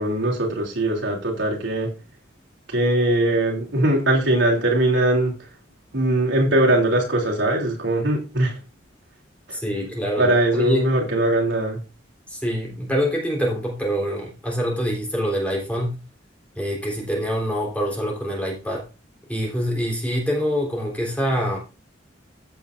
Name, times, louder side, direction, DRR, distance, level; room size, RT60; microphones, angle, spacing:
voice 1, 0.0-1.9 2.7-5.3 5.9-8.6 9.5-9.6 10.2-11.8, right 1 dB, 70° right, 0 dB, 3.0 m, -21 dB
voice 2, 9.5-10.8 12.3-16.0 16.6-18.9 19.3-21.6, equal, 5° left, -2 dB, 3.4 m, -25 dB
15.0 x 7.1 x 2.5 m, 0.30 s
head